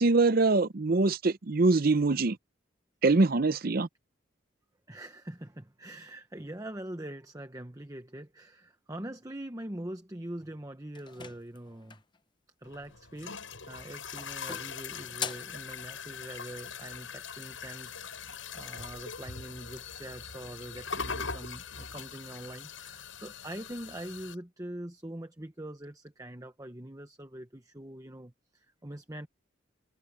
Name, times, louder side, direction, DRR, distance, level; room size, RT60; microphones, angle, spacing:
voice 1, 0.0-2.4 3.0-3.9, right 3 dB, 50° right, 0.7 m, -24 dB
voice 2, 4.9-12.0 12.6-13.4 13.6-29.3, right 1 dB, 20° right, 1.0 m, -43 dB
sound 1, 10.9-12.2 13.4-13.8 14.2-15.6, left 6 dB, 25° left, 0.7 m, -41 dB
sound 2, 12.6-24.3, left 6 dB, 90° left, 7.4 m, -41 dB
head